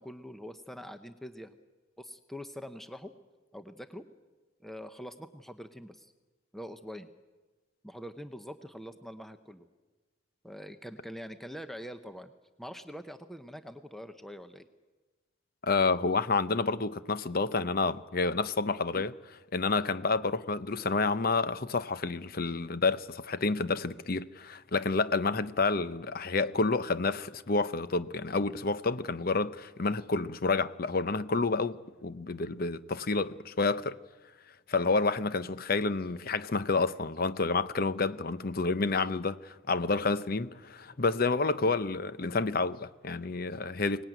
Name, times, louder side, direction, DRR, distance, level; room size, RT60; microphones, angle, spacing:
voice 1, 0.0-1.6 2.0-3.1 3.5-4.0 4.6-6.1 6.5-7.1 7.8-9.7 10.4-12.3 12.6-14.7, equal, ahead, 0.8 m, -44 dB
voice 2, 15.6-34.0 34.7-44.0, left 3 dB, 45° left, 0.7 m, -29 dB
24.0 x 19.0 x 9.2 m
head